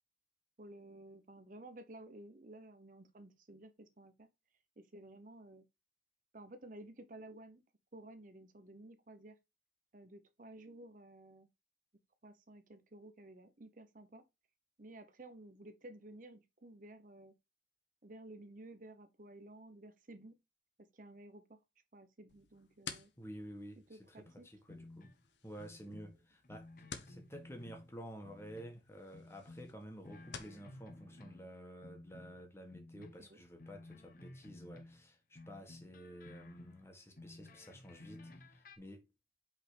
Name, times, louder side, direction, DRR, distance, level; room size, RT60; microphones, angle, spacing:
voice 1, 0.6-4.3 4.8-5.6 6.3-7.6 7.9-9.4 9.9-11.5 12.2-14.2 14.8-17.3 18.0-20.3 20.9-21.6 21.9-23.1 23.9-24.5 25.9-26.0 32.9-33.4, right 1 dB, 50° right, 0.9 m, -54 dB
sound 1, 22.3-30.6, left 6 dB, 90° left, 1.1 m, -54 dB
voice 2, 23.2-23.8 24.1-25.1 25.4-26.7 27.0-39.0, equal, 15° left, 1.6 m, -51 dB
sound 2, 24.3-25.3 25.5-28.0 28.2-28.8 29.1-31.6 31.8-35.1 35.4-38.8, left 2 dB, 50° left, 1.0 m, -55 dB
5.6 x 5.0 x 5.0 m
head